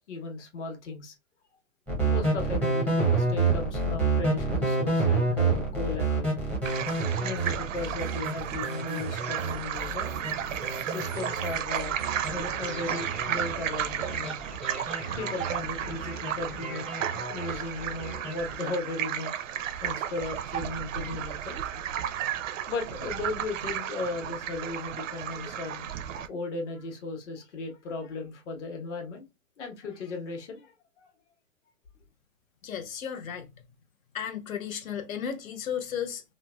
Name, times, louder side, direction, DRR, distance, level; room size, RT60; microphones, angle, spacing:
voice 1, 0.1-1.1 2.0-6.3 7.2-10.1 10.8-12.0 12.3-14.4 15.2-19.3 19.8-21.5 22.7-25.9 26.3-29.2 29.6-31.1, left 3 dB, 55° left, 1.2 m, -36 dB
sound 1, 1.9-18.5, right 3 dB, 5° left, 0.5 m, -29 dB
sound 2, 6.6-26.3, right 10 dB, 65° right, 0.5 m, -33 dB
voice 2, 32.6-33.5 34.1-36.3, left 8 dB, 75° left, 0.8 m, -34 dB
3.2 x 2.1 x 2.2 m
hypercardioid pair, 135°, 41 cm